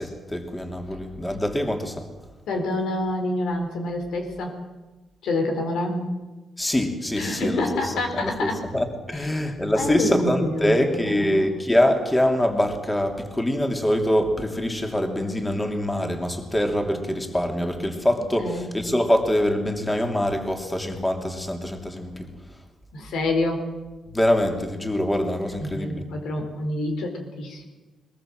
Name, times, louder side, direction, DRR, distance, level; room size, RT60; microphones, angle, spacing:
voice 1, 0.0-2.1 6.6-22.3 24.1-26.0, left 1 dB, 15° left, 4 dB, 3.0 m, -24 dB
voice 2, 2.5-4.6 5.2-6.2 7.1-8.6 9.1-9.3 9.7-11.5 18.4-18.7 22.9-23.7 25.6-27.7, left 2 dB, 90° left, 4 dB, 4.0 m, -27 dB
22.0 x 20.5 x 7.7 m, 1.2 s
cardioid pair, 95°, 0 cm